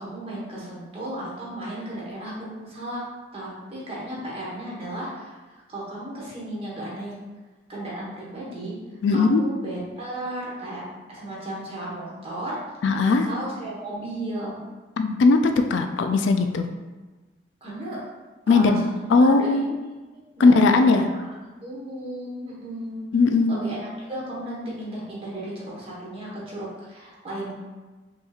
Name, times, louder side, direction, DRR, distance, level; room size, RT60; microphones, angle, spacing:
voice 1, 0.0-3.0 3.3-7.1 7.7-8.7 9.1-10.8 11.1-12.6 13.0-14.6 17.6-18.0 18.5-19.8 20.4-21.0 21.6-23.0 23.5-27.5, right 1 dB, 30° right, -6 dB, 1.2 m, -34 dB
voice 2, 9.0-9.4 12.8-13.3 15.0-16.7 18.5-18.8 19.1-19.7 20.4-21.0 23.1-23.6, left 3 dB, 80° left, 7 dB, 0.3 m, -18 dB
5.3 x 2.9 x 2.4 m, 1.2 s
head